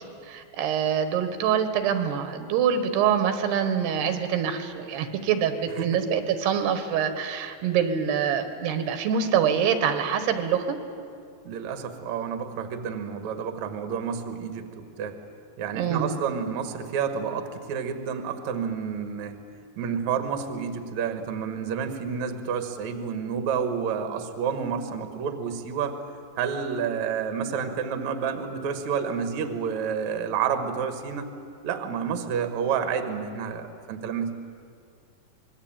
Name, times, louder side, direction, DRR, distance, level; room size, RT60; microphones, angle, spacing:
voice 1, 0.2-10.8 15.7-16.1, right 8 dB, 80° right, 8 dB, 3.5 m, -25 dB
voice 2, 11.4-15.2 15.6-19.4 19.8-26.0 26.4-31.3 31.6-34.3, right 7 dB, 55° right, 7 dB, 2.5 m, -29 dB
26.0 x 21.5 x 8.9 m, 2.3 s
omnidirectional pair, 4.7 m